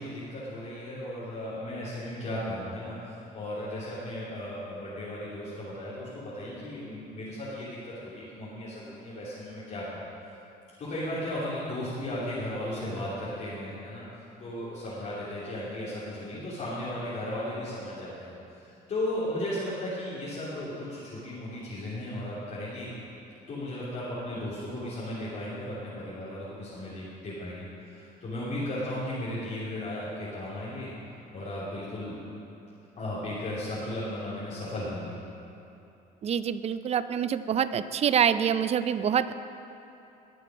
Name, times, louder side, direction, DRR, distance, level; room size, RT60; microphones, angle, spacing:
voice 1, 0.0-10.1 10.8-14.0 14.4-22.9 23.5-30.9 31.3-32.2 33.0-35.1, left 1 dB, 45° left, -10 dB, 3.2 m, -35 dB
voice 2, 36.2-39.3, right 8 dB, 40° right, 13 dB, 0.5 m, -26 dB
19.5 x 6.6 x 5.1 m, 2.8 s
cardioid pair, 110°, 17 cm